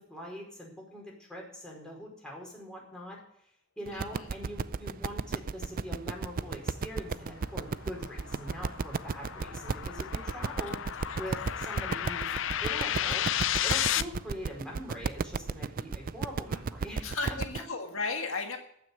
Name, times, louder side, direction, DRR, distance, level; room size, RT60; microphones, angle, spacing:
voice 1, 0.0-3.2 3.8-10.8 11.2-12.3 12.6-13.3 13.6-17.4, equal, 5° left, -3 dB, 4.7 m, -43 dB
voice 2, 3.9-4.3 11.0-11.2 13.9-14.0 17.0-18.6, left 4 dB, 85° left, 4 dB, 1.7 m, -35 dB
sound 1, 3.9-17.6, right 5 dB, 45° right, 0.4 m, -34 dB
sound 2, 7.1-14.0, left 11 dB, 65° left, 0.5 m, -33 dB
14.5 x 6.4 x 9.4 m, 0.72 s
head